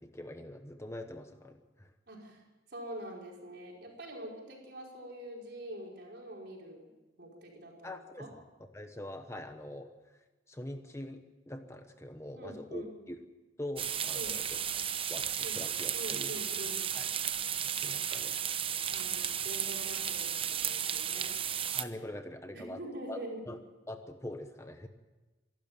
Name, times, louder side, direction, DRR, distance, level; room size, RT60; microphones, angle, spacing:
voice 1, 0.0-1.9 7.8-8.4 8.7-9.9 10.5-13.2 13.6-14.8 15.1-16.3 16.9-17.0 17.8-18.4 21.7-22.8 23.1-23.6 23.9-24.9, left 1 dB, 15° left, 7 dB, 1.0 m, -43 dB
voice 2, 2.1-2.4 2.7-6.9 7.2-8.3 12.4-12.9 14.1-14.4 15.4-15.6 15.9-16.8 18.9-21.3 22.5-23.4, right 1 dB, 55° right, -1 dB, 5.1 m, -45 dB
sound 1, 13.8-21.8, right 9 dB, 30° right, 0.7 m, -34 dB
25.5 x 12.5 x 9.0 m, 1.2 s
head